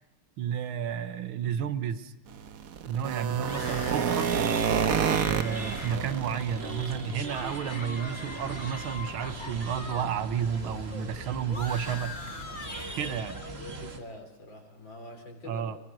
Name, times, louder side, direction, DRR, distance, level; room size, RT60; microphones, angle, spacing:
voice 1, 0.4-2.1 2.9-4.3 5.2-12.2 13.0-13.4 15.5-15.8, right 8 dB, 75° right, 12 dB, 2.0 m, -31 dB
sound 1, 2.3-7.5 7.8-8.0 8.4-8.6 8.9-9.0 9.4-9.5, right 7 dB, 55° right, 1.1 m, -29 dB
sound 2, 3.3-14.0, right 3 dB, 30° right, 2.0 m, -40 dB
sound 3, 3.5-10.1 10.3-13.5, left 3 dB, 25° left, 1.3 m, -43 dB
voice 2, 13.5-15.7, left 2 dB, 60° left, 3 dB, 4.5 m, -45 dB
24.5 x 23.0 x 6.3 m, 0.96 s
omnidirectional pair, 2.3 m